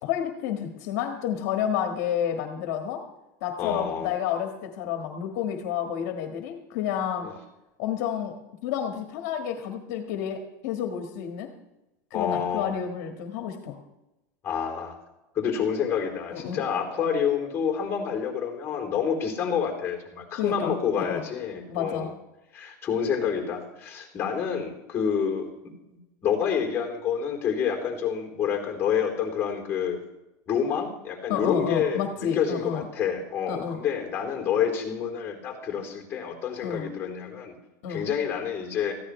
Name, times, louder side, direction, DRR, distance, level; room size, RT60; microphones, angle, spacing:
voice 1, 0.0-3.0 3.4-7.3 7.8-8.3 8.6-11.5 12.1-13.8 16.3-16.6 20.3-21.2 21.7-22.1 31.3-32.9 33.5-33.8 36.6-36.9 37.8-38.0, left 9 dB, 65° left, 4 dB, 1.6 m, -30 dB
voice 2, 3.6-4.1 7.2-7.3 12.1-12.7 14.4-14.9 15.4-22.1 22.5-25.5 26.2-30.0 30.5-37.5 37.9-39.0, left 7 dB, 25° left, -1 dB, 3.6 m, -28 dB
20.0 x 15.0 x 3.2 m, 0.96 s
supercardioid pair, 150°, 10 cm